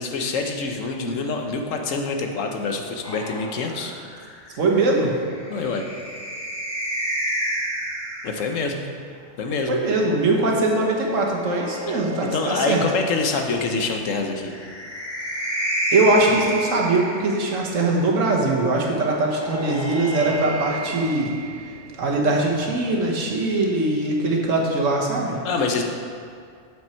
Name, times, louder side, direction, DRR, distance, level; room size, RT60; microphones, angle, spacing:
voice 1, 0.0-3.9 5.5-5.8 8.2-8.8 9.4-9.8 11.9-12.0 12.3-14.5 25.4-25.8, left 4 dB, 90° left, 3 dB, 1.2 m, -26 dB
sound 1, 3.0-8.6 9.9-12.9 14.3-17.7 19.0-21.9, right 1 dB, 30° left, 1.5 m, -31 dB
voice 2, 4.6-5.1 9.7-12.8 15.9-21.3 22.0-25.4, right 2 dB, 90° right, -1 dB, 1.6 m, -21 dB
8.9 x 7.1 x 4.4 m, 2.3 s
omnidirectional pair, 1.3 m